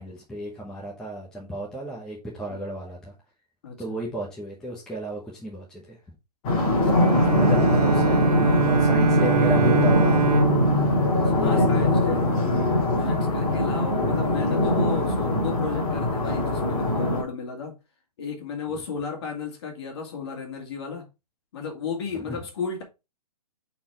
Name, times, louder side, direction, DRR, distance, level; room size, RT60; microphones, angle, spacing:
voice 1, 0.0-3.1 3.8-6.0 6.6-10.5 11.4-11.9 15.3-15.6 18.7-18.8 22.1-22.4, right 1 dB, 5° left, 1.0 m, -33 dB
voice 2, 3.6-4.0 11.4-12.6 12.9-17.8 18.2-21.1 21.5-22.8, left 5 dB, 40° left, 2.3 m, -33 dB
sound 1, 6.4-17.2, left 2 dB, 20° left, 2.0 m, -22 dB
Bowed string instrument, 6.9-12.2, right 9 dB, 75° right, 0.5 m, -25 dB
5.8 x 4.4 x 4.4 m
hypercardioid pair, 165°, 20 cm